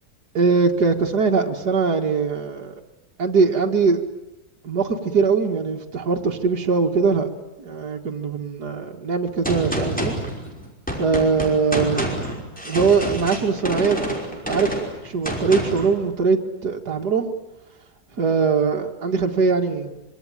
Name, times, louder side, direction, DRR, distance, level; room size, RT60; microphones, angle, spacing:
voice 1, 0.3-2.7 3.2-4.1 4.6-7.3 7.6-10.1 11.0-12.2 12.7-14.7 15.0-17.3 18.2-20.0, right 5 dB, 80° right, 2 dB, 2.5 m, -21 dB
Gunshot gunfire, 9.4-15.9, equal, 5° left, 5.5 m, -28 dB
25.5 x 24.0 x 9.1 m, 0.97 s
omnidirectional pair, 1.7 m